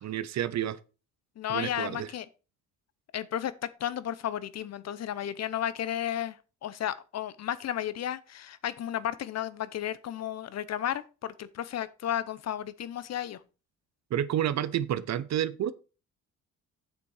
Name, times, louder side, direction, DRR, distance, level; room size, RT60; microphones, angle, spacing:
voice 1, 0.0-0.8 1.5-2.1 14.1-15.7, right 11 dB, 65° right, 0.7 m, -30 dB
voice 2, 1.4-2.3 3.1-3.5 3.8-6.4 6.6-13.4, left 10 dB, 60° left, 0.8 m, -33 dB
8.4 x 6.8 x 4.8 m
cardioid pair, 90°, 30 cm